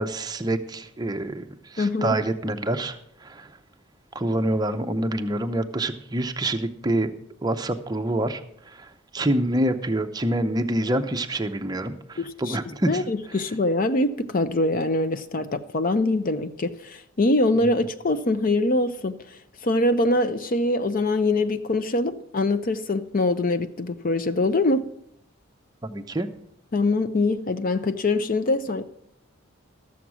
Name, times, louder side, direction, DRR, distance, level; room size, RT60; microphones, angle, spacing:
voice 1, 0.0-1.4 1.7-3.5 4.1-7.1 7.4-8.4 8.7-8.9 9.1-13.0 25.8-26.3, right 1 dB, 20° right, 0.6 m, -26 dB
voice 2, 1.8-2.2 12.2-12.6 12.9-19.4 19.6-24.8 26.7-28.8, left 2 dB, 40° left, 0.5 m, -23 dB
13.5 x 7.1 x 6.1 m
head